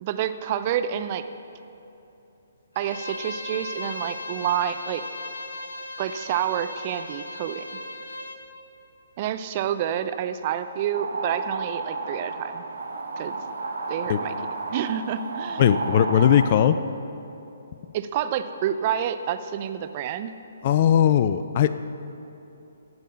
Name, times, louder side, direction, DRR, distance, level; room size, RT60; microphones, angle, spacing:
voice 1, 0.0-1.2 2.8-5.0 6.0-7.7 9.2-12.6 13.2-13.3 13.9-14.4 14.7-15.6 17.9-20.3, right 10 dB, 35° right, 11 dB, 0.5 m, -28 dB
Bowed string instrument, 2.8-8.4, left 2 dB, 85° left, 1.2 m, -37 dB
sound 1, 10.6-16.5, right 3 dB, 80° right, 1.6 m, -32 dB
voice 2, 15.6-16.8 20.6-21.7, left 9 dB, 40° left, 12 dB, 0.4 m, -19 dB
15.5 x 5.5 x 7.0 m, 2.9 s
figure-of-eight pair, 135°, 0 cm